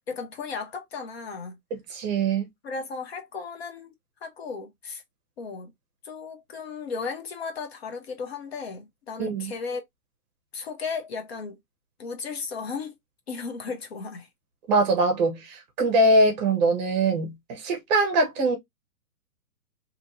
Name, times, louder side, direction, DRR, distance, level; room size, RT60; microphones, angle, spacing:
voice 1, 0.1-1.6 2.6-3.9 4.2-5.0 5.4-5.7 6.0-9.8 10.5-11.6 12.0-12.9 13.3-14.3, left 5 dB, 45° left, 0.7 m, -35 dB
voice 2, 1.9-2.5 9.2-9.5 14.7-18.6, right 2 dB, 30° right, 0.9 m, -22 dB
2.9 x 2.7 x 2.5 m
hypercardioid pair, 130°, 46 cm